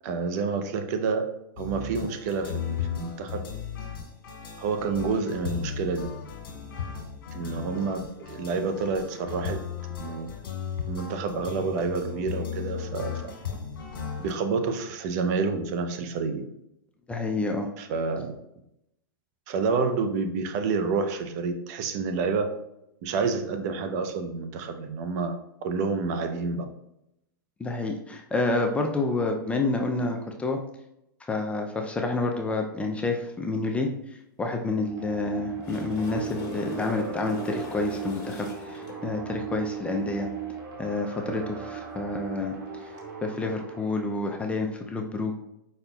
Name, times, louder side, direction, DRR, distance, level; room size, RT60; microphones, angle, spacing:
voice 1, 0.0-1.3 1.6-3.5 4.6-6.1 7.3-9.6 10.0-10.3 10.9-13.1 14.2-16.5 17.8-18.3 19.5-22.5 23.0-25.4 25.6-26.7, right 4 dB, 50° right, 7 dB, 0.6 m, -28 dB
sound 1, 1.6-14.3, left 7 dB, 65° left, 1.5 m, -36 dB
voice 2, 17.1-17.7 27.6-30.6 31.3-33.9 34.4-40.3 40.8-42.6 43.2-45.3, left 3 dB, 10° left, 3 dB, 0.4 m, -29 dB
sound 2, 34.8-44.2, right 8 dB, 70° right, 1.4 m, -37 dB
sound 3, 35.4-39.0 42.8-43.0, left 3 dB, 45° left, 1.4 m, -39 dB
4.9 x 4.2 x 2.3 m, 0.82 s
hypercardioid pair, 120°, 12 cm